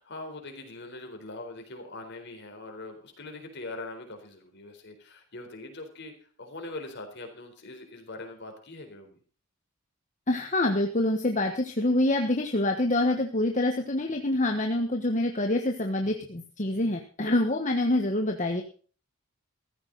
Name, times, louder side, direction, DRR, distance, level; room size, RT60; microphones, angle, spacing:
voice 1, 0.0-6.1 6.4-9.2, left 2 dB, 55° left, 4 dB, 4.0 m, -42 dB
voice 2, 10.3-18.6, left 1 dB, 35° left, 4 dB, 1.3 m, -26 dB
14.5 x 14.5 x 4.0 m, 0.41 s
head